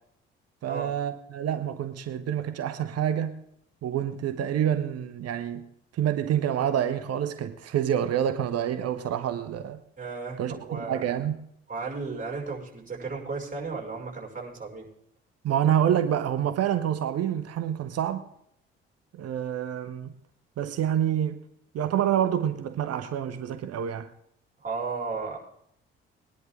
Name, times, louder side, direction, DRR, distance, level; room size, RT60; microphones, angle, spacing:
voice 1, 0.6-3.4 3.8-5.7 5.9-9.8 10.4-11.4 15.4-18.3 19.2-20.1 20.6-21.4 21.7-24.1, right 10 dB, 55° right, 1.1 m, -27 dB
voice 2, 10.0-11.1 11.7-14.9 24.6-25.4, right 4 dB, 30° right, 6.1 m, -34 dB
21.0 x 10.5 x 3.8 m
hypercardioid pair, 45°, 30 cm